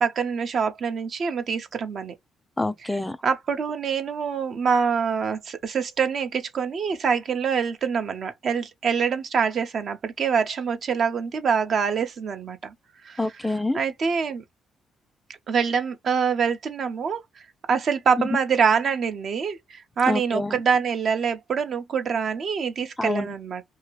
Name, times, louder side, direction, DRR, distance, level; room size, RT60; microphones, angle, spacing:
voice 1, 0.0-2.1 3.2-12.7 13.0-13.2 13.7-14.4 15.5-17.2 17.7-23.6, right 6 dB, 55° right, 0.6 m, -25 dB
voice 2, 2.6-3.2 13.2-13.8 18.2-18.3 20.1-20.6 23.0-23.3, left 2 dB, 15° left, 0.3 m, -26 dB
2.8 x 2.4 x 3.1 m
cardioid pair, 90°, 0 cm